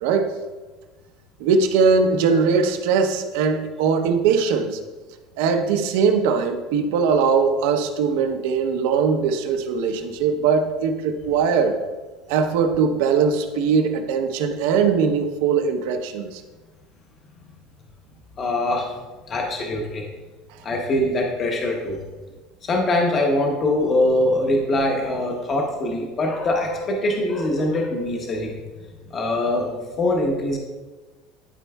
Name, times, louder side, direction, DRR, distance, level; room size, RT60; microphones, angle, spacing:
voice 1, 0.0-0.3 1.4-4.8 5.4-11.8 12.3-16.4, right 5 dB, 75° right, 6 dB, 0.7 m, -20 dB
voice 2, 18.4-18.9 19.3-20.1 20.6-22.0 22.6-28.6 29.1-30.6, left 1 dB, 30° left, 1 dB, 0.8 m, -23 dB
11.5 x 4.4 x 2.3 m, 1.3 s
cardioid pair, 150°, 0 cm